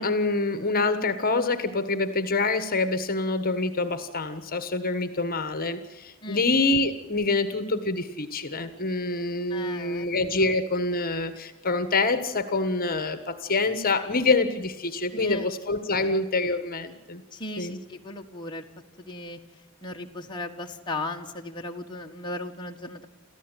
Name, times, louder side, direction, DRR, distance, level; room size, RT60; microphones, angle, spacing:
voice 1, 0.0-17.2 17.6-17.8, left 3 dB, 40° left, 10 dB, 1.5 m, -26 dB
voice 2, 9.5-10.1 15.1-15.4 17.3-18.6 19.0-19.4 19.8-23.1, left 2 dB, 20° left, 1 dB, 1.6 m, -36 dB
29.0 x 14.5 x 9.2 m, 1.0 s
head